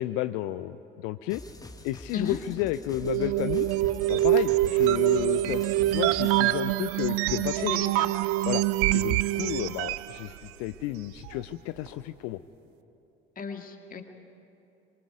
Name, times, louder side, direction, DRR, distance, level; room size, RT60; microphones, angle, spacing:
voice 1, 0.0-1.4 1.8-3.7 4.1-7.7 8.4-8.6 8.9-12.4, left 15 dB, 55° left, 12 dB, 0.6 m, -32 dB
sound 1, 1.3-6.4, left 2 dB, 10° left, 1.4 m, -45 dB
sound 2, 2.9-12.1, right 7 dB, 65° right, 1.5 m, -45 dB
sound 3, 3.0-10.2, right 16 dB, 50° right, 0.5 m, -25 dB
voice 2, 7.4-8.1 8.8-9.1 13.4-14.0, left 5 dB, 30° left, 4 dB, 2.1 m, -36 dB
26.0 x 23.0 x 4.8 m, 2.8 s
figure-of-eight pair, 55°, 30 cm